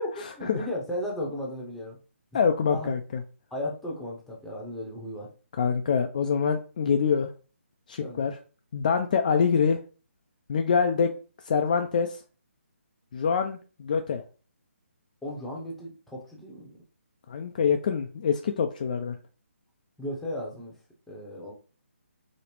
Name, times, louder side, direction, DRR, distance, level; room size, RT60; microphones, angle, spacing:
voice 1, 0.0-2.0 2.3-2.4 2.7-2.9 3.5-5.3 8.0-8.3 15.2-16.7 20.0-20.7 21.1-21.5, left 1 dB, 5° left, -3 dB, 0.7 m, -35 dB
voice 2, 2.3-3.0 5.6-7.3 7.9-8.4 8.7-9.8 10.5-11.1 11.5-12.2 13.1-14.2 17.3-19.2, left 6 dB, 35° left, 5 dB, 0.3 m, -25 dB
5.0 x 2.0 x 2.9 m, 0.36 s
hypercardioid pair, 160°, 7 cm